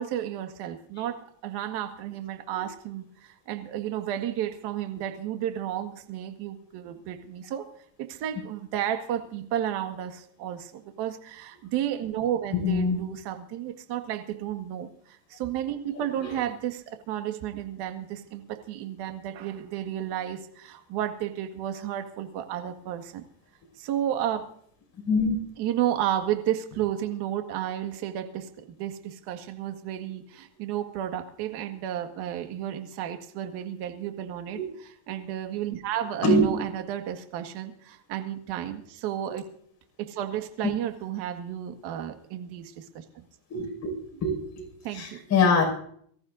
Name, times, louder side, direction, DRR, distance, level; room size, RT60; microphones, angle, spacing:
voice 1, 0.0-7.7 8.0-23.2 23.8-24.5 25.6-39.5 40.0-43.3 44.8-45.2, right 11 dB, 55° right, 6 dB, 1.8 m, -32 dB
voice 2, 12.5-13.0 16.2-16.3 25.1-25.4 34.5-34.6 36.2-36.6 43.5-43.9 44.2-45.7, left 2 dB, 35° left, 0 dB, 5.9 m, -24 dB
24.0 x 14.5 x 2.7 m, 0.63 s
supercardioid pair, 135°, 47 cm